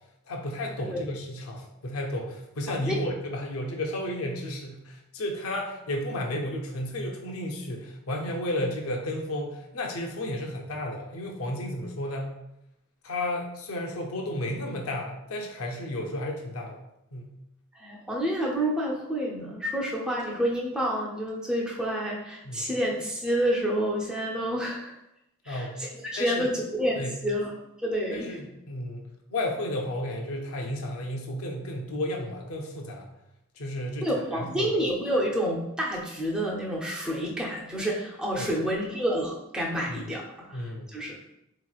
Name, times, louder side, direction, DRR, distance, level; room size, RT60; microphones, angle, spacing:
voice 1, 0.3-12.3 13.0-16.8 17.1-17.3 22.4-22.7 25.5-25.8 26.2-26.5 27.0-27.1 28.1-33.1 33.6-34.7 38.4-38.5 39.9-40.0 40.5-40.9, left 1 dB, 70° left, 0 dB, 0.6 m, -33 dB
voice 2, 17.7-24.9 25.4-27.5 27.8-28.4 34.0-40.6 40.9-41.2, equal, 5° right, -3 dB, 0.5 m, -29 dB
3.8 x 3.0 x 2.3 m, 0.84 s
head